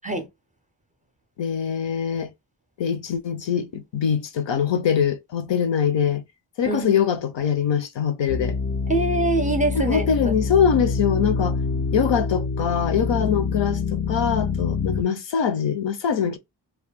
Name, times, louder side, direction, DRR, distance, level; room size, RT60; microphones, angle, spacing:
voice 1, 1.4-2.3 2.8-6.2 6.6-8.6 9.9-11.6 11.9-16.4, left 7 dB, 65° left, 0.7 m, -23 dB
voice 2, 6.7-7.0 8.9-10.3, right 2 dB, 15° right, 0.6 m, -24 dB
sound 1, 8.3-15.0, left 4 dB, 30° left, 0.3 m, -26 dB
2.4 x 2.1 x 3.5 m
cardioid pair, 75°, 47 cm